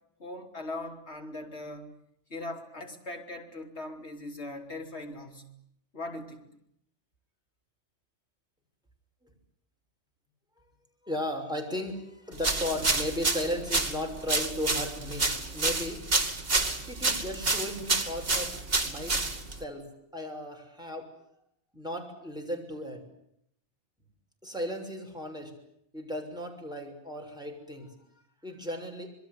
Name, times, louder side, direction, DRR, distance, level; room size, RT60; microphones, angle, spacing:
voice 1, 0.2-1.9 2.3-5.5 5.9-6.5, left 2 dB, 70° left, 3 dB, 4.2 m, -40 dB
voice 2, 11.0-16.0 16.9-19.2 19.6-21.1 21.7-23.0 24.4-25.5 25.9-27.9 28.4-29.1, left 1 dB, 5° right, 1 dB, 6.5 m, -36 dB
sound 1, 12.4-19.6, right 3 dB, 55° right, 2.8 m, -29 dB
26.5 x 22.0 x 9.6 m, 0.74 s
omnidirectional pair, 1.2 m